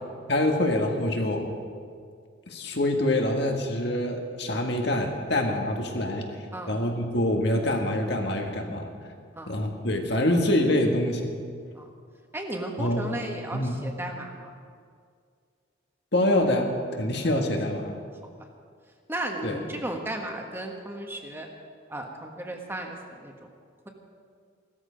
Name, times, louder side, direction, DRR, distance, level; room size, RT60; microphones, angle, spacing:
voice 1, 0.3-1.5 2.5-6.3 6.7-8.9 9.5-11.3 12.8-13.1 13.5-13.8 16.1-17.9 19.4-19.6, left 1 dB, 60° left, 2 dB, 1.8 m, -25 dB
voice 2, 12.3-14.5 19.1-21.5 21.9-23.3, right 1 dB, 10° right, 2 dB, 1.5 m, -35 dB
17.5 x 13.5 x 5.2 m, 2.1 s
head